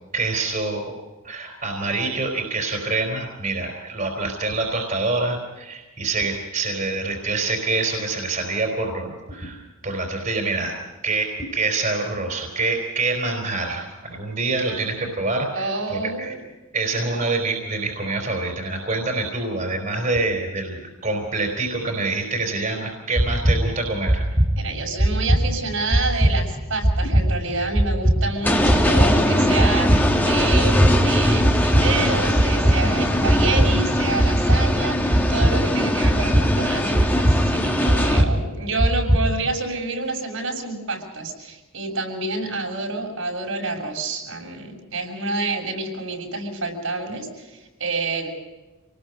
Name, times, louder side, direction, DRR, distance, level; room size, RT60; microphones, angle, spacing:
voice 1, 0.1-0.9 1.2-10.7 11.0-16.4 16.7-24.3, right 3 dB, 40° right, 2 dB, 3.8 m, -26 dB
voice 2, 15.5-16.4 17.0-17.1 24.6-48.3, right 3 dB, 70° right, 0 dB, 6.5 m, -28 dB
sound 1, 23.2-39.5, right 1 dB, 20° right, 1.3 m, -21 dB
sound 2, 28.4-38.2, equal, 10° left, 2.0 m, -21 dB
28.0 x 19.5 x 5.3 m, 1.1 s
head